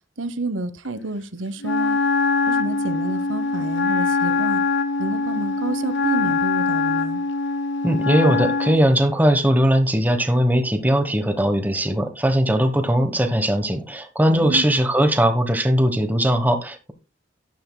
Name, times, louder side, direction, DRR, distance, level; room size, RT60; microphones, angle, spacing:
voice 1, 0.2-2.0 2.5-4.6 5.0-7.2 14.3-14.7, right 2 dB, 90° right, 1.0 m, -29 dB
Wind instrument woodwind instrument, 1.6-8.9, left 3 dB, 65° left, 0.7 m, -23 dB
voice 2, 7.8-16.9, equal, 10° right, 1.1 m, -19 dB
12.0 x 10.5 x 2.2 m
head